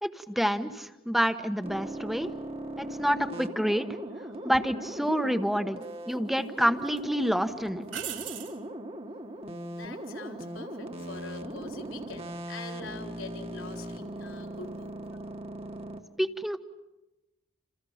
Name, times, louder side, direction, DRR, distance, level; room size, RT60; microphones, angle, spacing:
voice 1, 0.0-2.3 2.8-3.9 4.4-7.9 16.2-16.6, equal, ahead, 9 dB, 1.1 m, -28 dB
sound 1, 1.6-16.0, right 1 dB, 30° right, 1.6 m, -39 dB
sound 2, 4.5-4.7 5.8-6.5 6.9-7.0 7.9-8.6 11.7-12.1, right 10 dB, 60° right, 3.0 m, -39 dB
voice 2, 9.7-15.2, left 3 dB, 75° left, 3 dB, 4.0 m, -44 dB
29.0 x 29.0 x 5.8 m, 1.0 s
head